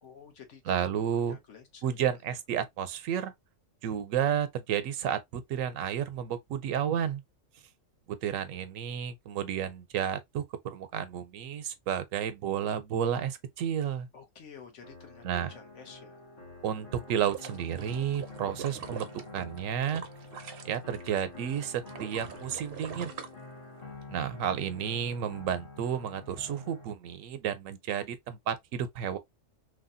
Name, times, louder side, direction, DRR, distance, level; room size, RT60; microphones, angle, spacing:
voice 1, 0.0-0.7 1.3-1.8 14.1-16.2, left 6 dB, 70° left, 1.3 m, -50 dB
voice 2, 0.6-1.4 1.8-3.3 3.8-7.2 8.1-14.1 15.2-15.5 16.6-20.0 20.6-23.1 24.1-29.2, right 9 dB, 90° right, 1.0 m, -32 dB
sound 1, 14.8-26.8, left 3 dB, 45° left, 1.1 m, -47 dB
sound 2, 17.1-21.2 21.5-24.0 24.4-24.5, right 8 dB, 60° right, 0.6 m, -44 dB
3.2 x 2.3 x 2.5 m
omnidirectional pair, 1.3 m